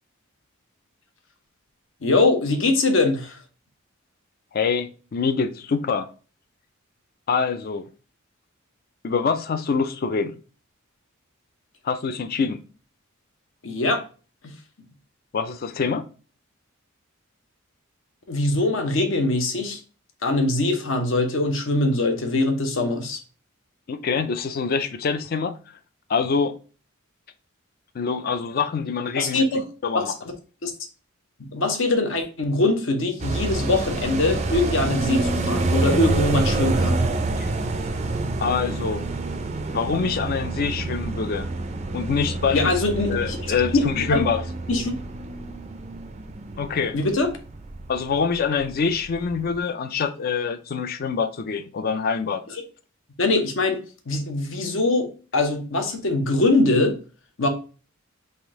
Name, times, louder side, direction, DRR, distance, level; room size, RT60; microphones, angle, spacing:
voice 1, 2.0-3.4 13.6-14.0 18.3-19.8 20.2-23.2 29.2-29.6 29.9-30.1 30.6-30.7 31.4-37.0 42.5-44.3 44.7-45.0 46.9-47.3 52.5-52.6 53.2-57.0 57.4-57.5, left 2 dB, 65° left, 0.8 m, -22 dB
voice 2, 4.5-6.1 7.3-7.8 9.0-10.3 11.8-12.6 15.3-16.0 23.9-25.5 26.1-26.5 27.9-29.4 29.8-30.1 37.4-37.5 38.4-39.1 39.7-41.5 41.9-42.7 43.1-44.4 46.6-47.0 47.9-52.4, left 5 dB, 45° left, 0.4 m, -25 dB
sound 1, 33.2-48.3 48.6-48.7 49.0-49.6, right 2 dB, 30° right, 0.4 m, -27 dB
3.5 x 2.6 x 3.5 m
head